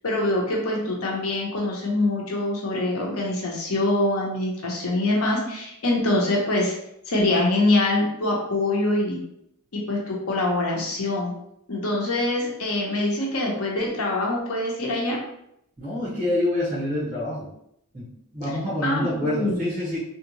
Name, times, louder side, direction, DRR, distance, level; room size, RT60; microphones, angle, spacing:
voice 1, 0.0-6.7 7.1-9.2 9.7-11.3 11.7-15.2 18.8-19.6, left 2 dB, 75° left, -2 dB, 0.9 m, -24 dB
voice 2, 15.8-17.5 17.9-20.0, left 1 dB, 35° right, -10 dB, 1.5 m, -27 dB
3.5 x 2.5 x 3.0 m, 0.76 s
head